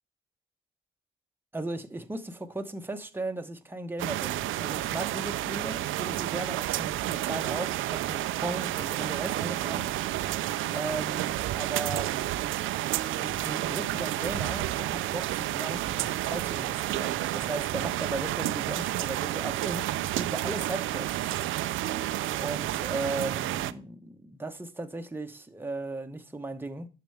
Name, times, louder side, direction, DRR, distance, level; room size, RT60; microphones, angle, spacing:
voice 1, 1.5-9.9 10.7-12.3 13.2-21.4 22.3-26.9, right 2 dB, 10° right, 1.1 m, -37 dB
sound 1, 4.0-23.7, right 14 dB, 80° right, 0.5 m, -30 dB
10.0 x 6.6 x 3.4 m
cardioid pair, 90°, 20 cm